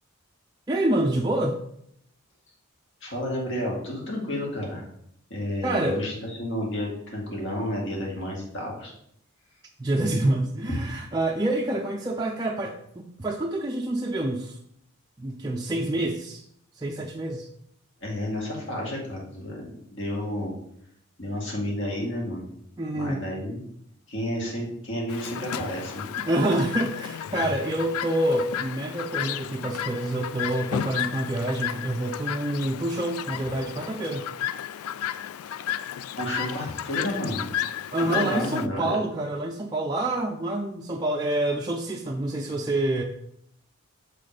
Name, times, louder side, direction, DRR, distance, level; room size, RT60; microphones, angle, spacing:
voice 1, 0.7-1.6 5.6-6.0 9.8-14.6 15.2-16.4 16.8-17.5 22.8-23.2 26.2-34.3 37.9-43.0, right 1 dB, 20° right, 0 dB, 0.4 m, -27 dB
voice 2, 3.0-4.9 5.3-8.9 10.7-10.8 18.0-19.6 19.9-20.5 21.2-22.5 22.9-23.6 24.1-26.1 36.1-37.5 38.0-39.0, left 1 dB, 55° left, -2 dB, 2.1 m, -31 dB
Chirp tweet, 25.1-38.7, left 10 dB, 85° left, 0.3 m, -33 dB
6.6 x 4.1 x 4.9 m, 0.70 s
head